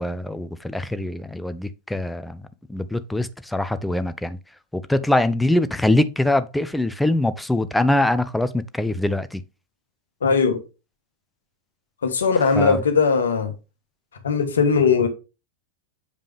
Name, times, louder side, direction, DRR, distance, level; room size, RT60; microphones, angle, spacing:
voice 1, 0.0-4.4 4.7-9.4 12.6-12.8, left 1 dB, 5° left, 0.5 m, -23 dB
voice 2, 10.2-10.6 12.0-13.5 14.1-15.1, left 5 dB, 65° left, 1.3 m, -19 dB
7.2 x 5.2 x 3.3 m
figure-of-eight pair, 90°, 0 cm